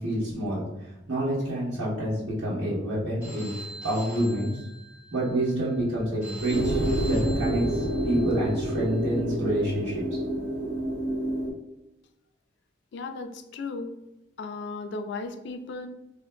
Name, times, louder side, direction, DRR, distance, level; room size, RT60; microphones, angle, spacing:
voice 1, 0.0-3.5 3.8-4.5 5.1-6.8 7.1-10.2, right 1 dB, 85° right, -10 dB, 1.2 m, -28 dB
Telephone, 3.2-9.2, right 1 dB, 10° right, 0.9 m, -44 dB
sound 1, 6.5-11.5, right 1 dB, 60° right, 0.6 m, -28 dB
voice 2, 12.9-13.9 14.4-15.9, left 3 dB, 60° left, 7 dB, 0.3 m, -35 dB
3.7 x 2.5 x 2.2 m, 0.91 s
head